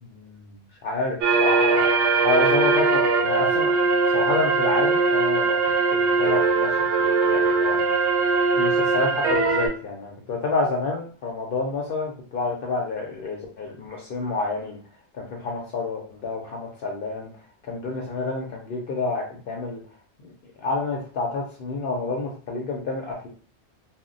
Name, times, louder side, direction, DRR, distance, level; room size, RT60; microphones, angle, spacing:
voice 1, 0.0-0.5 0.8-1.8 2.2-3.8 4.1-5.6 5.9-6.7 7.0-7.8 8.6-14.8 15.1-17.3 17.7-19.8 20.2-20.3 20.6-23.3, left 3 dB, 60° left, -1 dB, 0.7 m, -29 dB
sound 1, 1.2-9.7, right 4 dB, 85° right, 0.9 m, -21 dB
2.1 x 2.1 x 3.7 m, 0.40 s
omnidirectional pair, 1.1 m